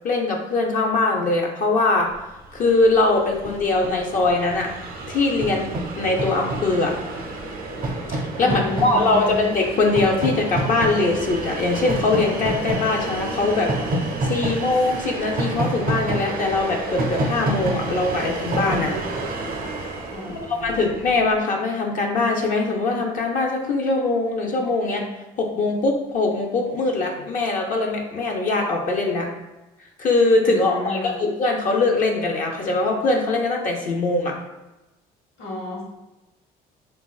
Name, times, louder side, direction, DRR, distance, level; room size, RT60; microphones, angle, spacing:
voice 1, 0.0-2.1 2.5-4.7 5.1-5.7 6.0-7.0 8.1-13.7 14.2-19.0 20.6-25.0 25.4-29.3 30.0-34.4, left 3 dB, 50° left, 0 dB, 0.5 m, -22 dB
Train, 2.4-2.5 2.7-21.1, right 2 dB, 55° right, 0.5 m, -28 dB
voice 2, 8.4-9.4 20.1-21.0 30.5-31.1 35.4-35.8, left 1 dB, 85° left, -3 dB, 0.9 m, -32 dB
2.9 x 2.3 x 2.3 m, 1.0 s
cardioid pair, 110°, 17 cm